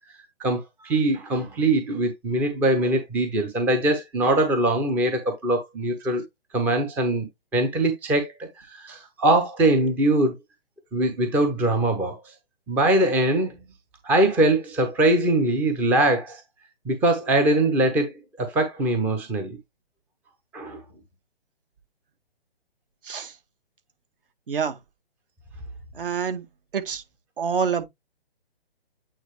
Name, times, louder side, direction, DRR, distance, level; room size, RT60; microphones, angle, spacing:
voice 1, 0.4-6.2 6.5-7.3 7.5-10.3 10.9-12.3 12.7-13.5 14.0-16.4 16.9-19.6 20.5-20.8, right 1 dB, 5° right, 0.6 m, -22 dB
voice 2, 23.0-23.4 24.5-24.8 25.9-26.5 26.7-27.0 27.4-27.9, right 6 dB, 55° right, 2.0 m, -26 dB
8.8 x 3.9 x 3.2 m
hypercardioid pair, 145°, 32 cm